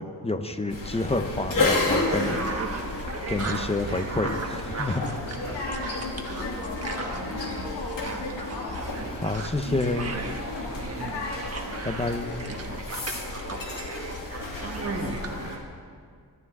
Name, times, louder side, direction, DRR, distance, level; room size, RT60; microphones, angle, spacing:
voice 1, 0.0-2.4 3.3-5.0 9.2-10.2 11.8-12.6, left 2 dB, 15° left, 8 dB, 0.6 m, -29 dB
sound 1, 0.7-15.6, left 2 dB, 55° left, 2.6 m, -32 dB
sound 2, 1.7-15.6, right 3 dB, 35° right, 1.3 m, -36 dB
voice 2, 5.4-8.8 10.5-11.9, left 2 dB, 75° left, -3 dB, 2.7 m, -36 dB
24.0 x 13.5 x 3.6 m, 2.1 s
wide cardioid pair, 165°, 40 cm